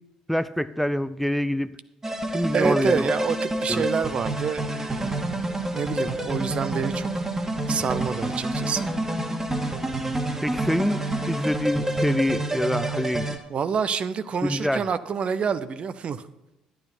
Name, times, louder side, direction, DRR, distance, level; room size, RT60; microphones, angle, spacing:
voice 1, 0.3-1.7 2.3-3.1 3.7-3.8 10.4-11.0 11.3-13.4 14.4-14.8, equal, ahead, 13 dB, 0.5 m, -25 dB
sound 1, 2.0-13.4, right 1 dB, 20° right, 1.8 m, -28 dB
voice 2, 2.5-5.3 5.7-7.1 7.7-8.9 13.5-16.2, right 6 dB, 45° right, 13 dB, 0.7 m, -27 dB
11.5 x 10.0 x 4.4 m, 0.93 s
hypercardioid pair, 55°, 3 cm